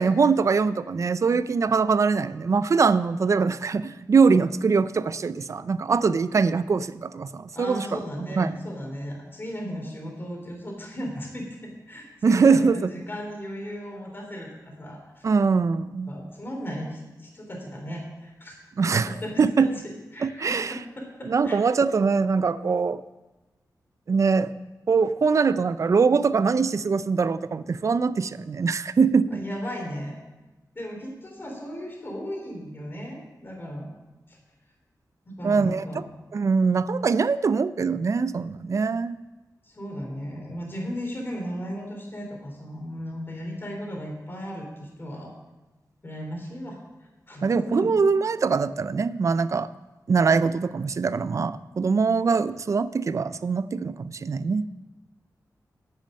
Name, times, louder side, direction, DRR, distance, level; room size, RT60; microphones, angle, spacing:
voice 1, 0.0-8.5 12.2-12.9 15.2-16.1 18.8-19.1 19.4-19.7 20.2-20.7 21.3-23.0 24.1-24.5 24.9-29.4 35.4-35.8 36.3-39.2 47.4-49.7 50.1-54.7, right 5 dB, 50° right, 15 dB, 0.4 m, -22 dB
voice 2, 7.5-15.2 16.1-18.5 19.1-21.6 29.3-30.2 30.7-33.9 34.3-34.4 35.2-36.1 39.6-45.3 46.0-46.8 47.3-47.9, equal, 35° left, 0 dB, 3.1 m, -36 dB
9.7 x 8.3 x 6.4 m, 1.1 s
wide cardioid pair, 110°, 7 cm